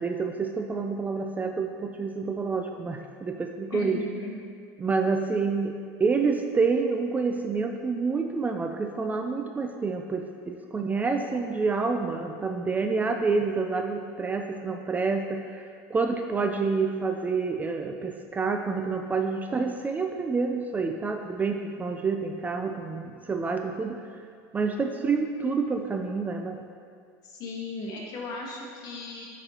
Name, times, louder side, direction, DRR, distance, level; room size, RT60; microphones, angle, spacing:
voice 1, 0.0-4.0 4.8-24.0 24.5-26.6, right 4 dB, 20° right, 5 dB, 0.3 m, -28 dB
voice 2, 3.7-4.4 27.2-29.2, left 3 dB, 55° left, -2 dB, 1.4 m, -36 dB
9.7 x 4.1 x 2.9 m, 2.2 s
supercardioid pair, 115°, 8 cm